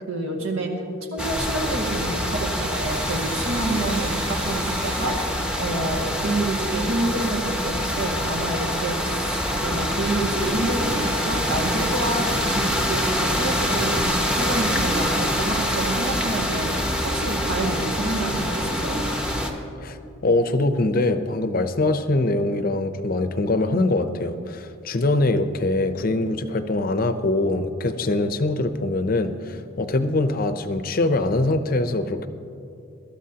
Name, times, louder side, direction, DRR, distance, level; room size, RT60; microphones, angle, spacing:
voice 1, 0.1-0.7 1.1-19.0, right 2 dB, 80° right, 0 dB, 1.9 m, -28 dB
sound 1, 1.2-19.5, equal, 5° right, 0.8 m, -26 dB
Domestic sounds home sounds, 2.4-6.9, right 2 dB, 30° right, 2.8 m, -37 dB
sound 2, 9.5-19.5, equal, 60° right, 3.0 m, -33 dB
voice 2, 20.2-32.3, left 2 dB, 45° left, 9 dB, 0.6 m, -23 dB
21.0 x 13.0 x 2.8 m, 2.6 s
head